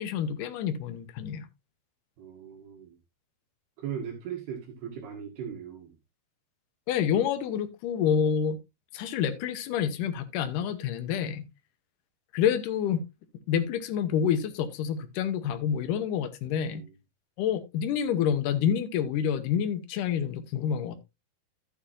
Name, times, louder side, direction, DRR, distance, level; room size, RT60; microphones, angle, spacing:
voice 1, 0.0-1.5 6.9-8.6 8.9-11.4 12.3-13.0 13.5-16.8 17.4-21.0, left 8 dB, 75° left, 2.0 m, -28 dB
voice 2, 2.2-3.0 3.8-5.9 16.7-16.9, right 8 dB, 70° right, 3.5 m, -38 dB
13.0 x 8.1 x 2.6 m
omnidirectional pair, 4.8 m